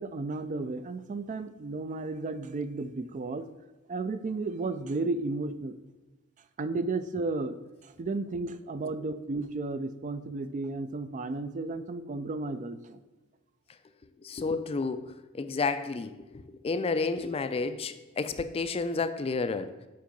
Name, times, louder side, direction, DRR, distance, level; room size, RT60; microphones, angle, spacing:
voice 1, 0.0-3.5 3.9-5.8 6.6-7.6 7.8-13.0, right 3 dB, 35° right, 12 dB, 0.4 m, -33 dB
voice 2, 14.2-19.7, left 4 dB, 30° left, 11 dB, 0.4 m, -31 dB
7.7 x 4.6 x 5.2 m, 1.2 s
head